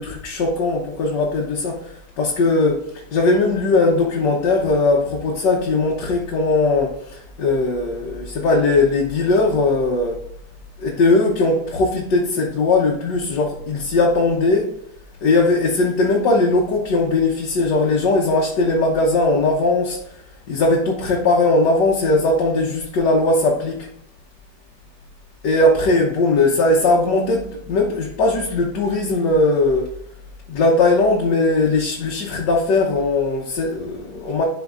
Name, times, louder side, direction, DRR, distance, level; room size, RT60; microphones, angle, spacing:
voice 1, 0.0-10.2 10.8-14.7 15.2-23.9 25.4-29.9 30.5-34.4, left 2 dB, 80° left, 1.6 m, -19 dB
11.5 x 4.5 x 2.4 m
omnidirectional pair, 1.9 m